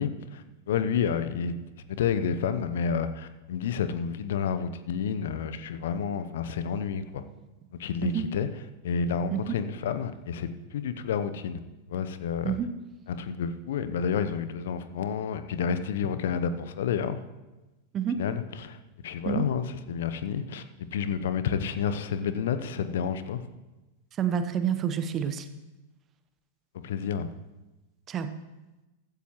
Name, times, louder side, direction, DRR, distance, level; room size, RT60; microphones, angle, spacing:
voice 1, 0.0-1.6 1.9-7.2 7.8-8.5 8.8-11.6 11.9-12.6 13.1-17.2 18.2-18.8 19.0-20.6 20.9-23.4 26.8-27.3, left 7 dB, 60° left, 11 dB, 0.8 m, -30 dB
voice 2, 24.1-25.5 28.1-28.3, right 8 dB, 30° right, 10 dB, 1.0 m, -28 dB
15.0 x 14.0 x 3.1 m, 1.1 s
figure-of-eight pair, 95°, 0 cm